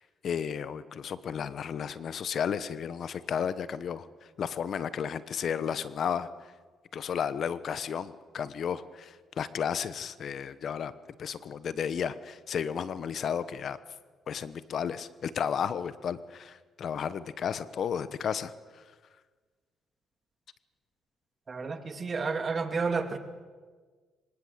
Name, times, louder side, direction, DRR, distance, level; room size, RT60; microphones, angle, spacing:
voice 1, 0.0-4.1 4.4-6.5 6.9-10.9 11.2-13.8 14.3-18.8, left 7 dB, 60° left, 15 dB, 1.1 m, -33 dB
voice 2, 21.5-23.2, right 4 dB, 35° right, 8 dB, 2.5 m, -31 dB
24.5 x 19.0 x 8.1 m, 1.4 s
cardioid pair, 90°, 0 cm